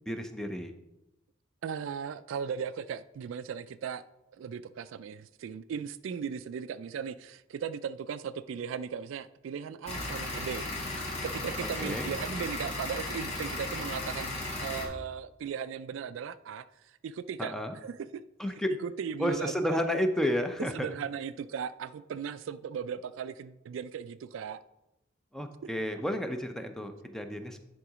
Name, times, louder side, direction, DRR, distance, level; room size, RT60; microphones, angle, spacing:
voice 1, 0.1-0.7 11.8-12.1 17.4-17.8 18.4-18.7 19.2-20.9 25.3-27.6, equal, ahead, 0.5 m, -31 dB
voice 2, 1.6-4.0 4.4-10.7 11.2-14.3 14.6-16.7 17.0-17.5 17.8-17.9 18.8-19.8 20.6-24.6, right 7 dB, 70° right, 0.3 m, -37 dB
sound 1, 9.9-14.9, left 2 dB, 30° left, 1.6 m, -35 dB
9.9 x 3.8 x 4.9 m
head